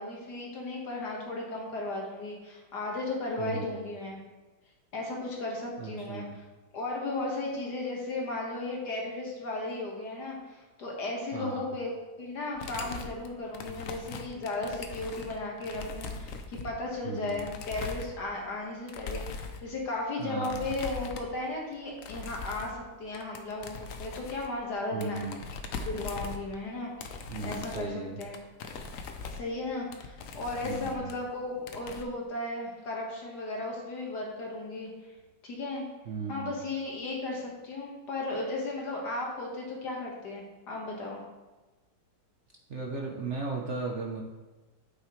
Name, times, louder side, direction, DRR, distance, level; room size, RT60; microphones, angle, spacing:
voice 1, 0.0-4.2 4.9-6.4 6.7-11.9 12.2-25.4 25.9-27.2 27.4-28.4 29.3-34.9 35.4-35.9 36.3-41.2, left 2 dB, 55° left, -2 dB, 1.9 m, -35 dB
voice 2, 3.4-3.8 5.8-6.4 11.3-11.7 17.0-17.4 20.2-20.7 24.9-25.4 27.3-28.2 30.6-31.1 36.1-36.5 42.7-44.2, right 4 dB, 75° right, 0 dB, 0.6 m, -36 dB
sound 1, 12.5-18.5 18.9-19.6 20.4-21.4 21.7-22.9 23.1-26.7 27.0-31.3 31.6-32.0, left 4 dB, 75° left, 0.7 m, -40 dB
8.8 x 7.7 x 3.1 m, 1.2 s
omnidirectional pair, 2.3 m